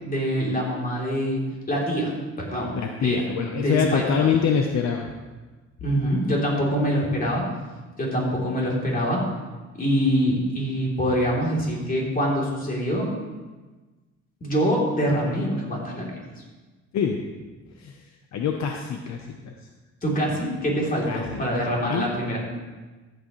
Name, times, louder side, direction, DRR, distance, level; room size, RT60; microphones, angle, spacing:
voice 1, 0.0-2.1 2.4-2.7 3.0-3.2 3.5-4.1 5.8-7.4 8.0-9.2 9.7-13.1 14.4-16.1 20.0-22.4, equal, 30° left, -3 dB, 3.3 m, -24 dB
voice 2, 2.7-5.1 16.9-17.3 17.8-17.9 18.3-19.5 21.1-21.5 21.9-22.1, left 7 dB, 65° left, 3 dB, 0.9 m, -25 dB
14.0 x 8.3 x 3.1 m, 1.3 s
cardioid pair, 90°, 30 cm